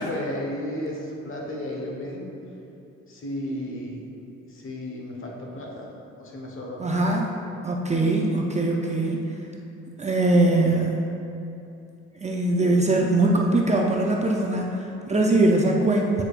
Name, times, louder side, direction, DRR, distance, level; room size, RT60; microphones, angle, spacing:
voice 1, 0.0-2.3 3.1-4.0 4.5-7.0, left 1 dB, 45° left, -2 dB, 1.3 m, -33 dB
voice 2, 6.8-7.4 7.6-9.3 10.0-11.0 12.2-16.2, right 2 dB, 25° right, -1 dB, 0.5 m, -22 dB
8.5 x 5.1 x 2.5 m, 2.7 s
cardioid pair, 90°, 30 cm